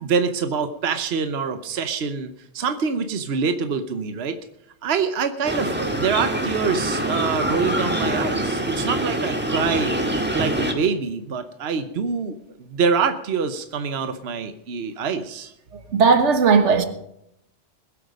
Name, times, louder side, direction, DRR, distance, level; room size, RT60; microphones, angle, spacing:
voice 1, 0.0-4.4 4.8-9.9 10.3-15.5, right 5 dB, 65° right, 1.2 m, -25 dB
sound 1, 5.4-10.7, right 1 dB, 10° right, 1.7 m, -25 dB
voice 2, 15.9-16.8, right 5 dB, 85° right, 1.6 m, -16 dB
20.5 x 8.5 x 5.2 m
omnidirectional pair, 1.2 m